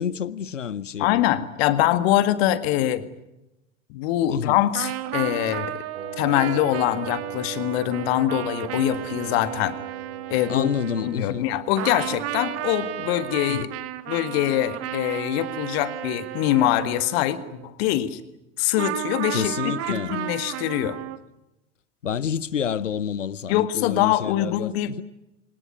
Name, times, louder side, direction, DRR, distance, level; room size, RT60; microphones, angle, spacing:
voice 1, 0.0-1.2 4.3-4.6 10.5-11.5 13.5-13.7 19.3-20.2 22.0-25.0, left 8 dB, 80° left, 0.8 m, -29 dB
voice 2, 1.0-3.1 3.9-5.7 6.2-9.8 10.3-10.7 11.0-13.7 14.1-18.2 18.6-21.0 23.5-25.0, left 13 dB, 55° left, 1.9 m, -24 dB
sound 1, 4.7-11.5 11.8-17.7 18.8-21.2, right 13 dB, 40° right, 1.6 m, -33 dB
Wind instrument woodwind instrument, 5.9-13.5, right 8 dB, 55° right, 3.5 m, -39 dB
24.0 x 19.0 x 9.8 m
figure-of-eight pair, 75°, 37 cm